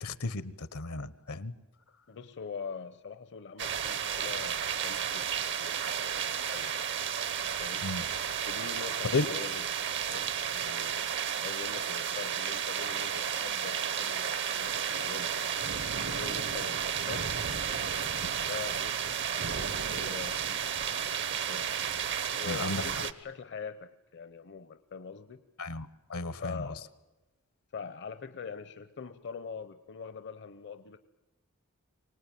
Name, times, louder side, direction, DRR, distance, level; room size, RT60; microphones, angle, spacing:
voice 1, 0.0-1.5 7.8-8.0 9.1-9.3 18.2-18.3 22.4-22.8 25.6-26.7, left 3 dB, 75° left, 16 dB, 1.1 m, -34 dB
voice 2, 2.1-5.8 6.5-6.7 7.6-7.9 8.4-9.6 10.1-15.4 16.0-21.7 22.3-25.4 26.4-26.9 27.7-31.0, left 5 dB, 55° left, 11 dB, 0.8 m, -43 dB
sound 1, 3.6-23.1, right 8 dB, 55° right, 1.0 m, -32 dB
24.5 x 19.5 x 9.2 m, 1.1 s
head